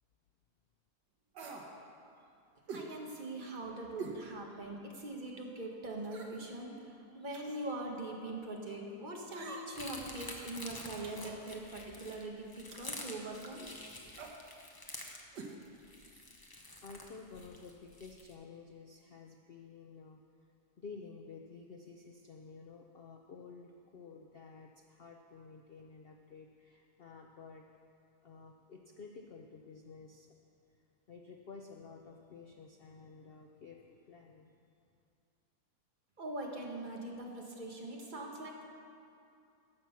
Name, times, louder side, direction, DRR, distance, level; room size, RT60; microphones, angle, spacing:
sound 1, 1.3-1.7 2.7-2.9 4.0-4.2 4.7-4.8 6.0-6.4 7.3-7.7 9.3-9.9 11.0-11.4 12.7-13.0 14.1-14.4 15.3-15.5 15.8-15.9, right 4 dB, 85° right, 1.7 m, -45 dB
voice 1, 2.7-13.7 36.2-38.6, right 2 dB, 30° right, 0 dB, 1.2 m, -42 dB
sound 2, 9.7-18.3, left 2 dB, 25° left, 0.5 m, -48 dB
voice 2, 16.8-20.2 20.8-27.7 28.2-30.4 31.1-34.5, left 4 dB, 85° left, 2 dB, 0.5 m, -52 dB
14.0 x 6.1 x 5.7 m, 2.5 s
omnidirectional pair, 1.8 m